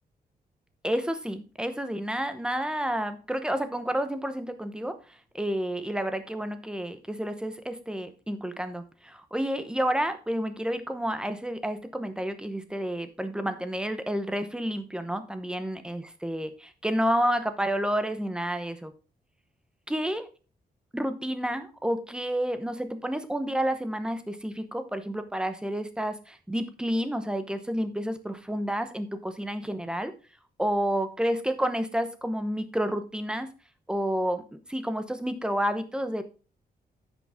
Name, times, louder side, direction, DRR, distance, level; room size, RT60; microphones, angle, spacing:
voice 1, 0.8-5.0 5.3-18.9 19.9-20.3 20.9-30.1 30.6-33.5 33.9-36.2, equal, 5° right, 9 dB, 0.8 m, -30 dB
9.9 x 6.1 x 3.6 m, 0.35 s
wide cardioid pair, 145°, 16 cm